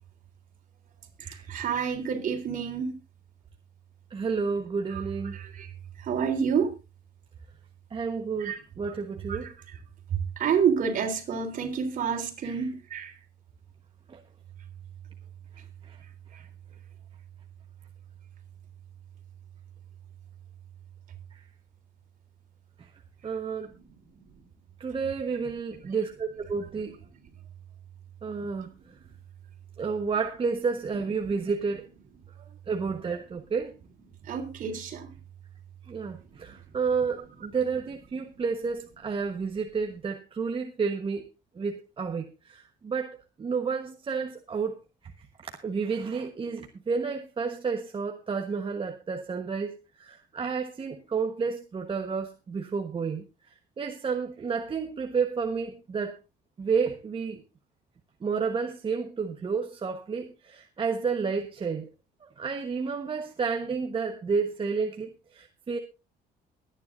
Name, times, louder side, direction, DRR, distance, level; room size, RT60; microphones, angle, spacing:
voice 1, 1.5-2.9 4.9-5.0 5.3-6.7 8.4-8.6 9.3-9.5 10.1-13.1 16.3-16.4 28.6-28.7 34.3-35.1, right 7 dB, 50° right, 4 dB, 3.5 m, -29 dB
voice 2, 4.1-5.4 7.9-9.5 12.4-12.6 14.1-14.2 15.8-16.0 21.3-21.4 22.8-22.9 23.2-23.7 24.8-27.0 28.2-28.7 29.8-31.9 32.7-33.7 35.8-41.3 41.5-44.7 45.4-53.2 53.8-56.2 56.6-57.4 58.2-61.9 62.2-65.8, right 5 dB, 30° right, 4 dB, 1.2 m, -31 dB
23.0 x 10.0 x 2.6 m, 0.28 s
cardioid pair, 110°, 17 cm